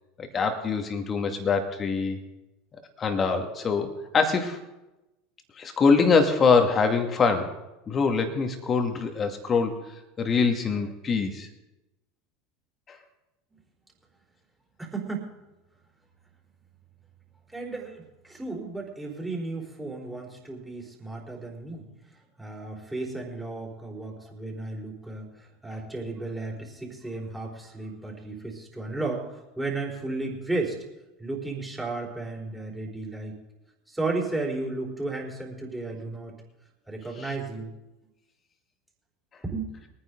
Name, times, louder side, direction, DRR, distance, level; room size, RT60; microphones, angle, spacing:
voice 1, 0.2-2.2 3.0-4.6 5.6-7.6 7.9-9.8 10.2-11.5 12.9-13.0 37.2-37.3, left 5 dB, 30° left, 5 dB, 2.2 m, -24 dB
voice 2, 14.8-15.3 17.5-21.9 22.4-30.8 31.2-33.4 33.9-36.3 36.9-37.7 39.4-39.7, right 3 dB, 5° right, -2 dB, 4.3 m, -34 dB
23.5 x 9.7 x 3.9 m, 0.99 s
figure-of-eight pair, 75°, 0 cm